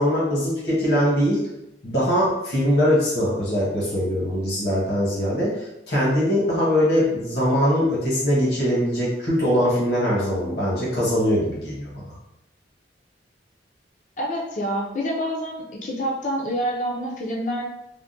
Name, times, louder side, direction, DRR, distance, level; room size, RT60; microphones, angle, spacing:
voice 1, 0.0-1.4 1.8-12.1, equal, 65° left, -6 dB, 1.1 m, -22 dB
voice 2, 14.2-17.6, equal, 45° left, -2 dB, 0.5 m, -27 dB
3.5 x 2.1 x 2.6 m, 0.85 s
head